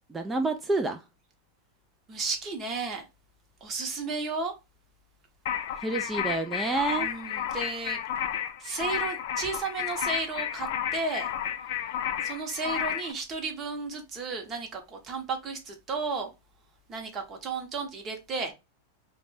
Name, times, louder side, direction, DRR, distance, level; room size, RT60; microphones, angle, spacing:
voice 1, 0.1-1.0 5.8-7.1, right 3 dB, 10° right, 0.3 m, -28 dB
voice 2, 2.1-3.0 3.6-4.5 7.0-8.0 8.6-11.3 12.2-16.3 16.9-18.5, right 4 dB, 30° right, 0.8 m, -33 dB
sound 1, 5.5-13.1, left 10 dB, 65° left, 0.4 m, -32 dB
2.5 x 2.1 x 3.2 m
supercardioid pair, 130°, 0 cm